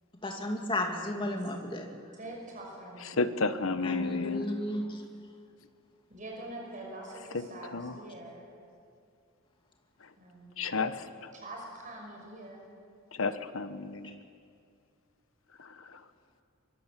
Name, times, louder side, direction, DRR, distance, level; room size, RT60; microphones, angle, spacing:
voice 1, 0.2-1.9 3.8-5.0, left 1 dB, 25° left, 2 dB, 2.6 m, -33 dB
voice 2, 2.1-4.1 6.1-8.5 10.2-10.7 11.3-12.6, right 1 dB, 40° right, -1 dB, 5.5 m, -45 dB
voice 3, 3.2-4.5 7.7-8.0 10.6-11.0 13.2-14.2, left 3 dB, 70° left, 11 dB, 1.1 m, -31 dB
24.0 x 23.5 x 7.6 m, 2.4 s
head